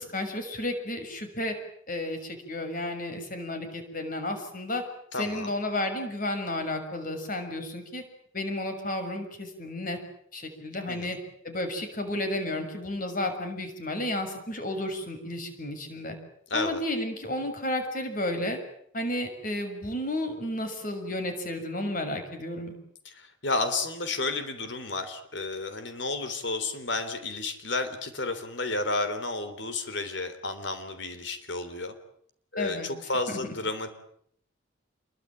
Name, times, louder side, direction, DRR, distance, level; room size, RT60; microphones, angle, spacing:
voice 1, 0.0-1.6 1.9-4.8 5.1-8.0 8.3-10.0 10.3-11.2 11.4-16.2 16.5-18.6 18.9-22.7 32.6-32.9 33.3-33.5, left 1 dB, 40° left, 7 dB, 6.5 m, -32 dB
voice 2, 5.1-5.5 10.9-11.2 16.5-16.8 23.1-31.9 32.5-33.9, left 3 dB, 60° left, 9 dB, 3.5 m, -32 dB
28.0 x 23.5 x 9.1 m, 0.67 s
head